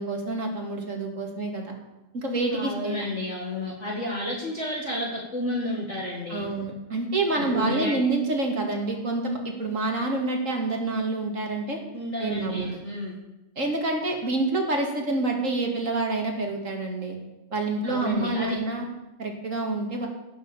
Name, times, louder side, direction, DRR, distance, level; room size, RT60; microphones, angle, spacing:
voice 1, 0.0-1.7 2.1-3.0 6.3-11.8 12.2-12.7 13.6-17.2 17.5-18.8 19.2-20.1, right 2 dB, 40° right, 1 dB, 2.5 m, -27 dB
voice 2, 2.5-6.5 7.3-8.0 11.9-13.2 17.8-18.6, left 1 dB, 35° left, -3 dB, 2.2 m, -31 dB
16.5 x 6.9 x 7.2 m, 0.98 s
omnidirectional pair, 2.2 m